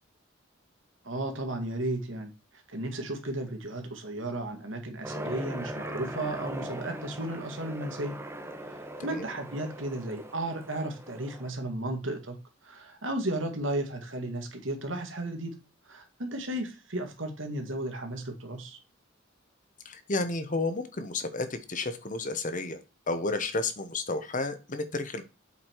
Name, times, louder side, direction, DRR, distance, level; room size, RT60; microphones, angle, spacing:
voice 1, 1.0-2.3 2.7-8.2 8.7-12.4 12.6-15.6 15.9-18.8, right 1 dB, 75° right, 4 dB, 2.1 m, -34 dB
Aircraft, 5.0-11.5, right 1 dB, 15° right, 1.0 m, -40 dB
voice 2, 19.8-22.8 23.1-25.2, left 3 dB, 40° left, 10 dB, 1.1 m, -31 dB
8.1 x 5.0 x 4.7 m, 0.30 s
head